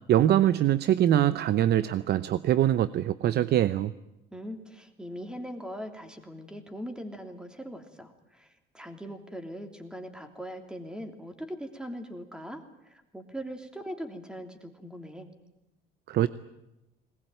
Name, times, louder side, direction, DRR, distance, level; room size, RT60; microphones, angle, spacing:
voice 1, 0.1-3.9 16.1-16.3, right 12 dB, 55° right, 15 dB, 0.8 m, -23 dB
voice 2, 4.3-15.3, equal, 5° right, 6 dB, 3.2 m, -41 dB
21.0 x 20.0 x 9.1 m, 0.93 s
cardioid pair, 125°, 20 cm